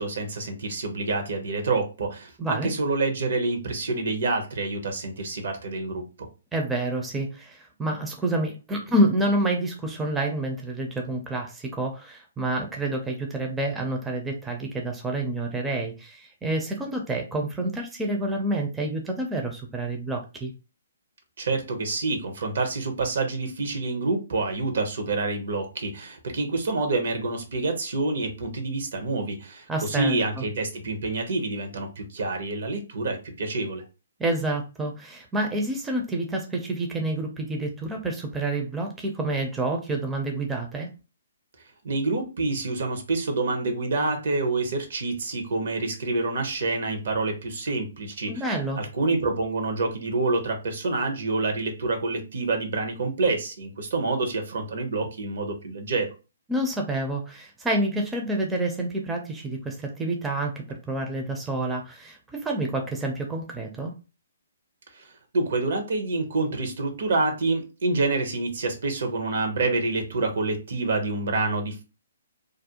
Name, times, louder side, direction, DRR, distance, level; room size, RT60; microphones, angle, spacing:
voice 1, 0.0-6.3 21.4-33.8 41.8-48.4 48.8-56.1 64.9-71.8, right 3 dB, 65° right, 4 dB, 0.8 m, -27 dB
voice 2, 2.4-2.7 6.5-20.5 29.7-30.4 34.2-40.9 48.3-48.8 56.5-63.9, right 1 dB, 10° right, 1 dB, 0.4 m, -28 dB
2.4 x 2.0 x 2.8 m, 0.31 s
hypercardioid pair, 140°, 0 cm